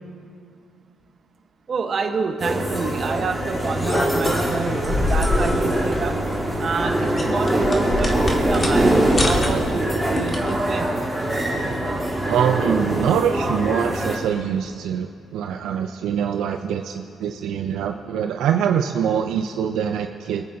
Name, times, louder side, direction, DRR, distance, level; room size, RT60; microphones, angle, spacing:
voice 1, 1.7-6.3 6.6-10.9, right 5 dB, 50° right, 5 dB, 1.2 m, -28 dB
sound 1, 2.4-14.2, right 1 dB, 5° right, 3.4 m, -23 dB
sound 2, 3.5-10.6, left 2 dB, 30° left, 1.8 m, -27 dB
voice 2, 12.3-20.5, right 8 dB, 85° right, 5 dB, 0.5 m, -24 dB
25.5 x 8.7 x 2.8 m, 2.3 s
cardioid pair, 90°, 0 cm